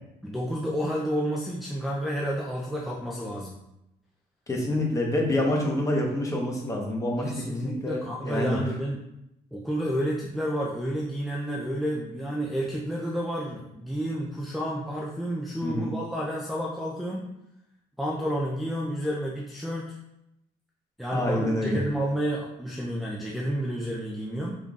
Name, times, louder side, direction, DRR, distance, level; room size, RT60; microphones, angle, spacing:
voice 1, 0.2-3.6 5.3-5.4 7.2-9.0 9.5-17.3 18.0-19.9 21.0-24.6, equal, ahead, -2 dB, 0.5 m, -30 dB
voice 2, 4.5-8.6 15.6-15.9 21.1-21.8, left 1 dB, 20° left, -1 dB, 1.1 m, -27 dB
5.5 x 3.6 x 2.4 m, 0.87 s
cardioid pair, 110°, 17 cm